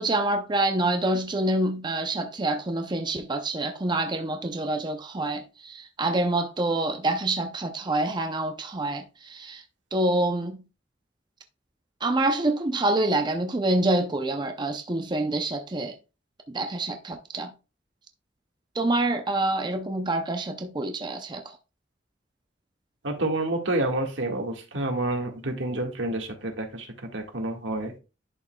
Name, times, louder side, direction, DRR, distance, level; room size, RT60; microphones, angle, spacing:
voice 1, 0.0-9.6 9.9-10.6 12.0-15.9 16.5-17.5 18.8-21.4, right 2 dB, 25° right, 0.6 m, -26 dB
voice 2, 23.0-26.9 27.1-28.0, right 2 dB, 90° right, 1.8 m, -28 dB
11.0 x 5.2 x 2.3 m
head